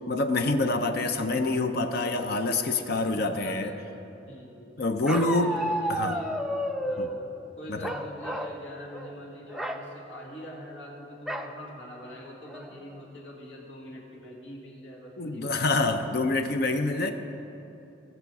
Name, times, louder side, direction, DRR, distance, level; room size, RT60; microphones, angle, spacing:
voice 1, 0.1-3.7 4.8-5.5 5.9-6.2 7.0-7.1 7.7-7.9 15.2-17.1, left 2 dB, 55° left, 7 dB, 0.6 m, -26 dB
voice 2, 3.0-3.8 4.2-4.8 5.1-6.3 6.8-15.7, equal, 80° left, -1 dB, 2.1 m, -44 dB
Bark, 5.1-7.2 7.8-8.6 8.9-9.1 9.5-9.8 11.3-11.5 12.1-12.2 12.5-12.9, equal, ahead, 0.4 m, -31 dB
18.0 x 6.9 x 4.7 m, 3.0 s
head